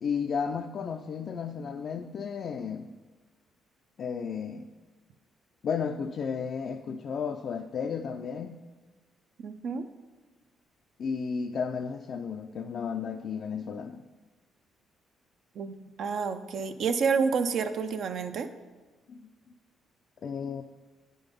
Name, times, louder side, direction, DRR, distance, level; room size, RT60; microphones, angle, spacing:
voice 1, 0.0-2.9 4.0-4.7 5.6-8.6 11.0-14.0 19.1-19.2 20.2-20.6, left 6 dB, 60° left, 5 dB, 0.4 m, -33 dB
voice 2, 9.4-9.8 15.6-18.5, right 5 dB, 65° right, 8 dB, 0.5 m, -29 dB
9.7 x 3.8 x 5.2 m, 1.3 s
cardioid pair, 90°, 0 cm